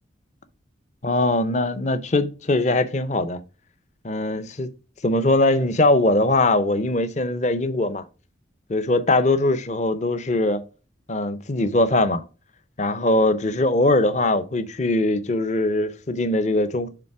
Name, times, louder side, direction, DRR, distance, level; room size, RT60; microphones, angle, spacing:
voice 1, 1.0-3.4 4.0-4.7 5.0-8.0 8.7-10.6 11.1-12.2 12.8-16.9, left 2 dB, 40° left, 0.6 m, -21 dB
6.8 x 3.4 x 4.7 m
head